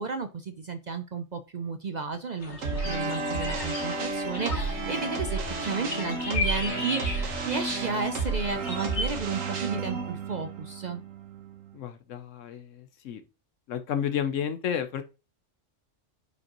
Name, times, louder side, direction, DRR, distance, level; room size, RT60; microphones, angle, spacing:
voice 1, 0.0-11.0, right 4 dB, 50° right, 0.5 m, -33 dB
sound 1, 2.4-9.1, left 3 dB, 60° left, 2.0 m, -36 dB
sound 2, 2.6-11.8, right 3 dB, 90° right, 1.5 m, -32 dB
voice 2, 11.7-13.2 13.7-15.0, left 8 dB, 80° left, 1.0 m, -31 dB
9.6 x 5.2 x 2.9 m
omnidirectional pair, 1.3 m